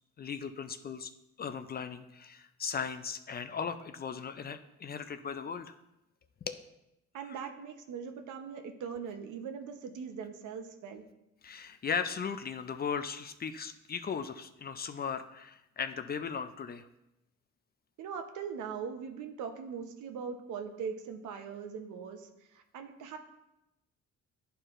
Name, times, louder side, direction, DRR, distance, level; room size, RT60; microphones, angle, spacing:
voice 1, 0.2-1.1 1.4-5.7 6.5-6.6 7.3-7.4 11.4-16.9, left 6 dB, 35° left, 10 dB, 0.4 m, -37 dB
voice 2, 7.1-11.0 18.0-22.3 22.5-23.2, right 6 dB, 80° right, 6 dB, 0.8 m, -40 dB
11.0 x 4.5 x 2.5 m, 0.89 s
cardioid pair, 90°, 30 cm